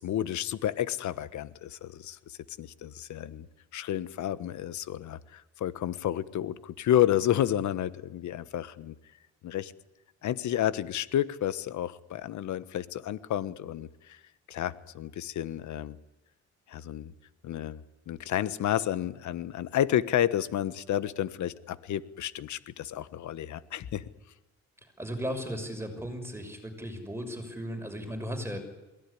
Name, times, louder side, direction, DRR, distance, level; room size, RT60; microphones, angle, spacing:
voice 1, 0.0-3.5 3.7-9.0 9.4-9.7 10.2-14.2 14.5-16.0 16.7-17.1 17.4-17.8 18.1-24.1, left 11 dB, 70° left, 15 dB, 1.3 m, -31 dB
voice 2, 25.0-28.6, equal, 10° right, 5 dB, 6.3 m, -36 dB
23.0 x 17.5 x 9.9 m, 1.0 s
cardioid pair, 90°, 30 cm